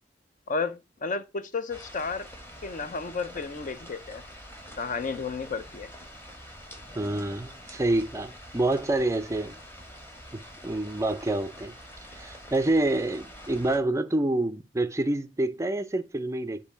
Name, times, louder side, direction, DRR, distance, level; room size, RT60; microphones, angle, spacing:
voice 1, 0.5-2.3 2.6-4.2 4.8-5.9, left 4 dB, 45° left, 0.5 m, -32 dB
sound 1, 1.7-13.8, equal, 15° left, 1.4 m, -46 dB
voice 2, 7.0-9.6 10.3-11.7 12.1-16.6, right 2 dB, 15° right, 0.4 m, -27 dB
6.8 x 2.7 x 5.4 m
head